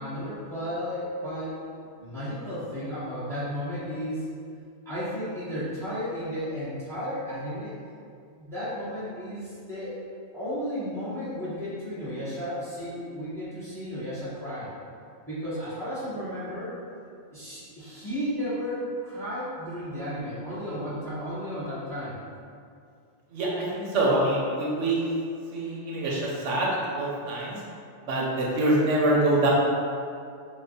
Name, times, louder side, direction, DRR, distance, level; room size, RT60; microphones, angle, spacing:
voice 1, 0.0-1.6 2.0-4.2 4.8-7.7 8.4-9.9 10.3-14.7 15.3-16.7 17.3-22.1, equal, ahead, -14 dB, 1.2 m, -33 dB
voice 2, 23.3-25.0 25.5-26.7 27.0-27.6 28.1-29.5, right 2 dB, 85° right, -4 dB, 1.0 m, -25 dB
3.0 x 2.3 x 3.8 m, 2.4 s
omnidirectional pair, 1.2 m